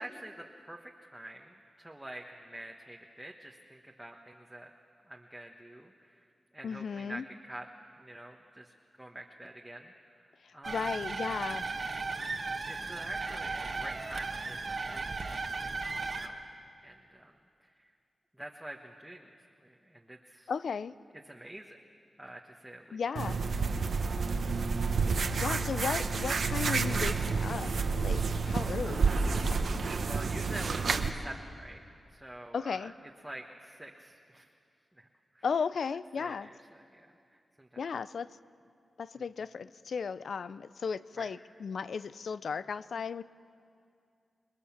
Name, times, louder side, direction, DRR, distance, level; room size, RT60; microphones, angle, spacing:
voice 1, 0.0-4.7 5.1-6.2 6.5-7.7 8.0-10.3 10.5-10.8 11.7-12.0 12.7-16.4 16.8-17.3 17.6-17.9 18.4-20.5 21.2-21.8 22.2-23.0 24.0-24.2 25.1-25.4 28.8-29.0 30.0-31.8 32.1-32.9 33.2-34.5 34.9-35.1 35.3-35.5 36.2-37.1 37.3-37.7 41.2-41.3, right 1 dB, 10° right, 0 dB, 1.3 m, -47 dB
voice 2, 6.6-7.2 10.7-11.6 20.5-20.9 22.9-23.4 25.4-27.7 28.0-29.8 32.5-32.9 35.4-36.5 37.8-38.3 39.0-43.2, left 6 dB, 75° left, 16 dB, 0.5 m, -35 dB
sound 1, 10.6-16.3, right 3 dB, 50° right, 1.5 m, -36 dB
sound 2, 23.2-31.1, right 4 dB, 75° right, 1.2 m, -29 dB
27.5 x 20.5 x 7.3 m, 2.4 s
wide cardioid pair, 90°, 0 cm